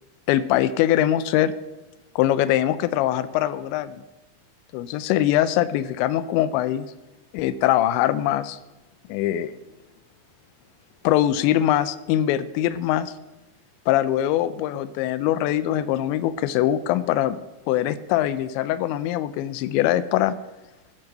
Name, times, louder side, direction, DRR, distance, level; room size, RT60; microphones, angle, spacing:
voice 1, 0.3-1.5 2.2-4.0 4.7-6.9 7.3-8.6 9.1-9.5 11.0-13.1 13.9-17.4 17.7-20.4, left 12 dB, 85° left, 14 dB, 2.9 m, -22 dB
12.0 x 9.7 x 6.5 m, 1.0 s
omnidirectional pair, 5.2 m